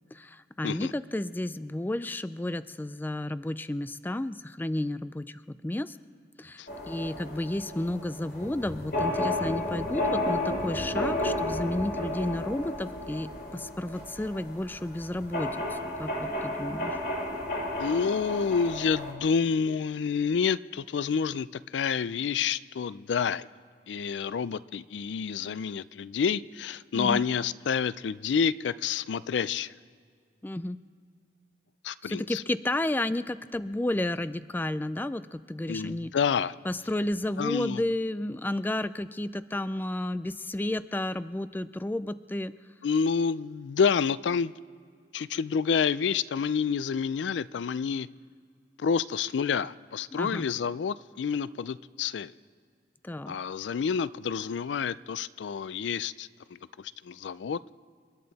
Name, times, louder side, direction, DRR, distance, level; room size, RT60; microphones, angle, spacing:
voice 1, 0.1-6.0 6.4-17.0 26.9-27.2 30.4-30.8 32.0-36.1 36.6-42.5 50.1-50.5 53.0-53.4, left 1 dB, 10° left, 14 dB, 0.3 m, -32 dB
sound 1, 6.7-19.1, left 1 dB, 60° left, 3.0 m, -32 dB
voice 2, 17.8-23.5 23.9-29.7 31.8-32.4 35.7-36.5 37.4-37.8 42.8-44.5 45.1-48.1 48.8-52.3 53.3-57.6, left 6 dB, 90° left, 18 dB, 0.4 m, -28 dB
29.5 x 10.5 x 4.1 m, 2.1 s
head